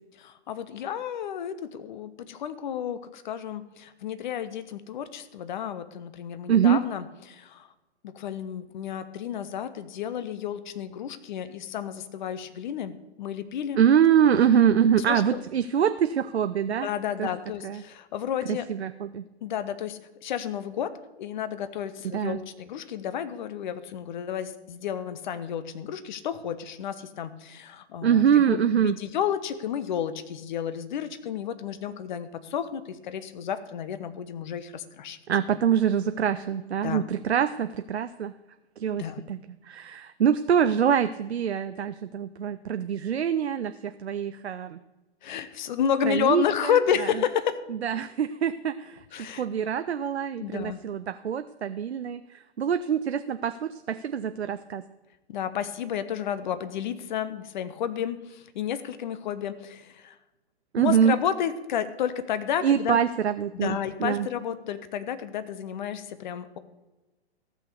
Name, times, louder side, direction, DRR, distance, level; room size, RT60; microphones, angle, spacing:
voice 1, 0.2-7.7 8.0-13.9 15.1-15.4 16.8-18.7 19.4-20.9 21.2-35.2 36.8-37.0 38.9-39.2 45.2-47.6 49.1-49.4 50.4-50.8 55.3-60.2 60.8-63.0 63.5-66.6, left 9 dB, 45° left, 13 dB, 0.9 m, -31 dB
voice 2, 6.5-6.8 13.8-16.9 17.2-17.3 17.6-17.8 18.5-19.2 22.1-22.4 28.0-29.0 35.3-38.3 38.8-39.4 39.7-44.8 46.0-46.8 47.8-49.0 49.3-52.2 52.6-54.8 60.7-61.2 62.6-64.3, right 8 dB, 70° right, 11 dB, 0.6 m, -24 dB
14.0 x 6.3 x 6.8 m, 1.1 s
figure-of-eight pair, 115°, 34 cm